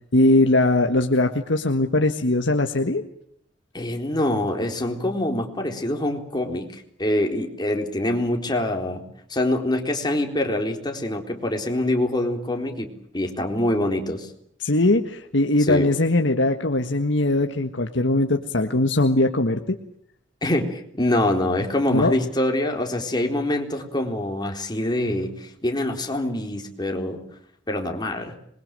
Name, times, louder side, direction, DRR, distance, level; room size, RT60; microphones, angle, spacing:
voice 1, 0.1-3.0 14.6-19.8 21.9-22.1, left 2 dB, 85° left, 5 dB, 1.6 m, -20 dB
voice 2, 3.7-14.3 15.7-15.9 20.4-27.2 27.7-28.4, left 1 dB, 25° left, 3 dB, 4.0 m, -25 dB
26.5 x 22.0 x 7.7 m, 0.69 s
head